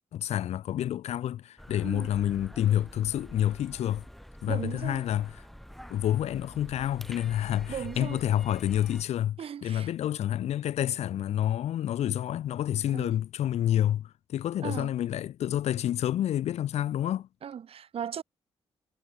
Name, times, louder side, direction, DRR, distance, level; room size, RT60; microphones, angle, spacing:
voice 1, 0.1-4.0 4.4-5.4 5.9-17.3, left 11 dB, 85° left, 2.7 m, -29 dB
sound 1, 1.6-9.0, equal, ahead, 4.3 m, -47 dB
voice 2, 4.5-5.0 7.7-8.2 9.4-9.9 12.9-13.1 14.6-14.9 17.4-18.2, right 8 dB, 60° right, 2.3 m, -37 dB
cardioid pair, 100°, 11 cm